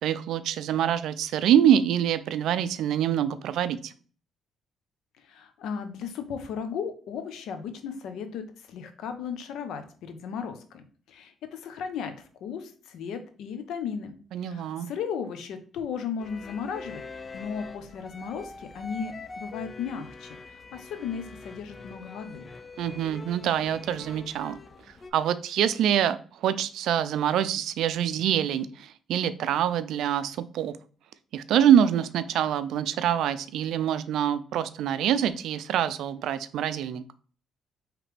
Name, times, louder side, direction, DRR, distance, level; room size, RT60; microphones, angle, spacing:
voice 1, 0.0-3.9 14.3-14.9 22.8-24.6 25.1-30.7 31.3-37.0, right 10 dB, 80° right, 14 dB, 0.4 m, -25 dB
voice 2, 5.2-17.0 17.3-22.5, left 6 dB, 80° left, 8 dB, 0.7 m, -36 dB
sound 1, 16.2-25.1, left 3 dB, 35° left, 0.5 m, -44 dB
4.9 x 3.3 x 3.3 m, 0.41 s
cardioid pair, 90°, 0 cm